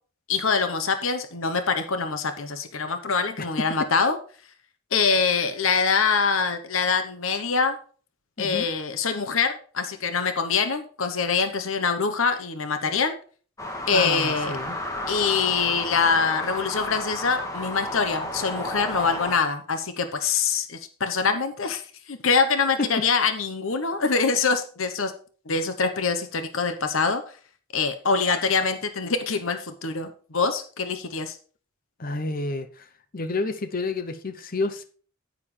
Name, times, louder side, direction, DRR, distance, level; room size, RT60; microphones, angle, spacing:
voice 1, 0.3-4.2 4.9-7.8 8.4-13.2 13.9-14.6 15.1-25.1 25.5-27.2 27.7-31.4, left 5 dB, 70° left, 9 dB, 1.0 m, -24 dB
voice 2, 8.4-8.7 13.9-14.8 22.8-23.0 32.0-32.9 33.1-34.8, left 3 dB, 40° left, 9 dB, 0.7 m, -29 dB
sound 1, 13.6-19.4, left 1 dB, 15° left, 1.6 m, -32 dB
9.9 x 9.4 x 3.3 m, 0.41 s
head